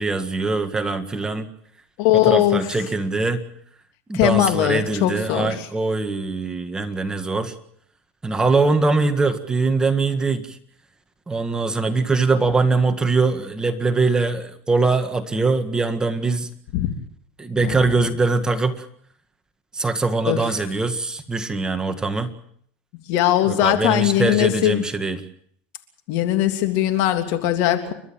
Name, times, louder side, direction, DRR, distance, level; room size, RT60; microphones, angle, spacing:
voice 1, 0.0-1.5 2.1-3.4 4.1-7.5 8.2-10.6 11.3-16.5 17.4-18.9 19.7-22.3 23.5-25.2, right 3 dB, 15° right, 7 dB, 1.8 m, -22 dB
voice 2, 2.0-2.7 4.1-5.7 16.7-16.9 17.6-17.8 20.3-20.4 23.1-24.8 26.1-27.9, left 13 dB, 65° left, 7 dB, 3.1 m, -20 dB
30.0 x 12.5 x 8.8 m, 0.64 s
supercardioid pair, 125°, 6 cm